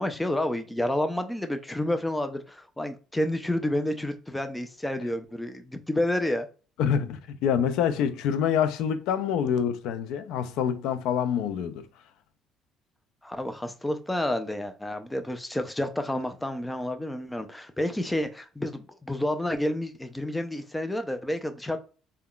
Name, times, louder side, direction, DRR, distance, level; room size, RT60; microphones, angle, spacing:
voice 1, 0.0-6.5 13.2-21.8, left 1 dB, 10° left, 0.4 m, -29 dB
voice 2, 6.8-11.9, left 8 dB, 75° left, 0.4 m, -26 dB
3.6 x 2.2 x 2.3 m
cardioid pair, 100°, 0 cm